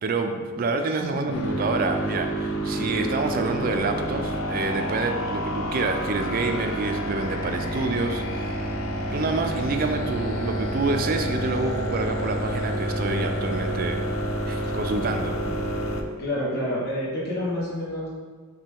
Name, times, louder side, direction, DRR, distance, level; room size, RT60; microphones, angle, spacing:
voice 1, 0.0-8.7 9.1-14.0 14.5-15.4, right 3 dB, 45° right, 6 dB, 0.3 m, -27 dB
voice 2, 0.9-1.5 14.6-14.9 16.2-18.1, left 1 dB, 50° left, -7 dB, 1.3 m, -29 dB
sound 1, 1.3-16.0, right 1 dB, 80° left, 0.4 m, -29 dB
5.3 x 2.2 x 3.5 m, 1.5 s
head